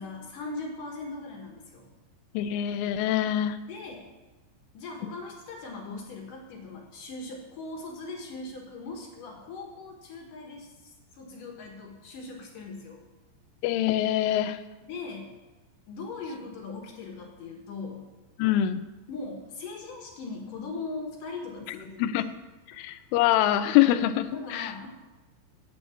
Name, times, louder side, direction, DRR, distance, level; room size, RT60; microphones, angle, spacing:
voice 1, 0.0-1.9 3.7-4.1 4.7-13.0 14.8-15.3 15.9-18.1 19.1-22.2 24.3-24.9, left 3 dB, 65° left, 0 dB, 2.1 m, -40 dB
voice 2, 2.3-3.6 13.6-14.6 18.4-18.8 22.0-22.2 22.7-24.7, left 12 dB, 85° left, 11 dB, 3.1 m, -24 dB
9.4 x 8.5 x 8.2 m, 1.1 s
omnidirectional pair, 5.8 m